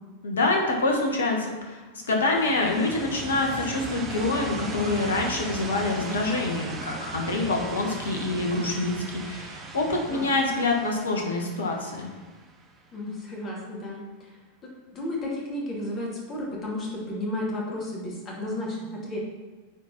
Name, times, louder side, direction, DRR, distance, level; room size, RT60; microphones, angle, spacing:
voice 1, 0.2-12.1, left 2 dB, 65° left, 1 dB, 1.5 m, -26 dB
sound 1, 2.3-13.0, right 4 dB, 25° right, 1.0 m, -38 dB
voice 2, 12.9-14.3 14.9-19.2, left 1 dB, 30° left, -3 dB, 2.4 m, -33 dB
9.1 x 4.4 x 4.3 m, 1.3 s
figure-of-eight pair, 90°, 0 cm